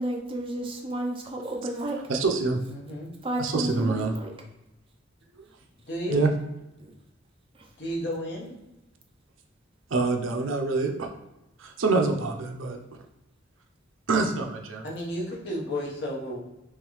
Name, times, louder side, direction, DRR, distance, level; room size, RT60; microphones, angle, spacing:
voice 1, 0.0-2.0 3.2-4.3 6.8-6.9, right 1 dB, 25° right, 1 dB, 0.6 m, -31 dB
voice 2, 2.1-2.6 3.4-4.1 6.1-6.3 9.9-11.1 11.6-12.8 14.1-14.8, right 3 dB, 75° right, 3 dB, 0.6 m, -25 dB
voice 3, 2.7-3.1 5.9-6.2 7.8-8.6 14.8-16.4, equal, 55° left, -4 dB, 1.0 m, -32 dB
3.7 x 3.0 x 3.1 m, 0.95 s
head